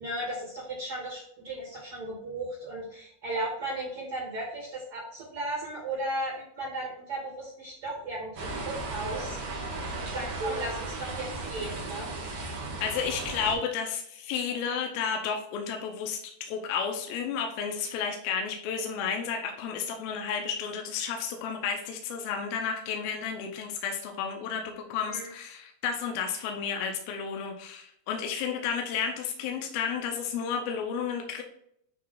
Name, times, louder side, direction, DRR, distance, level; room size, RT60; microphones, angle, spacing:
voice 1, 0.0-12.1 25.0-25.3, right 1 dB, 40° right, -5 dB, 2.3 m, -36 dB
sound 1, 8.4-13.6, right 2 dB, 65° right, 1.6 m, -36 dB
voice 2, 12.8-31.4, left 6 dB, 80° left, 3 dB, 2.2 m, -32 dB
8.9 x 3.2 x 3.8 m, 0.71 s
omnidirectional pair, 5.2 m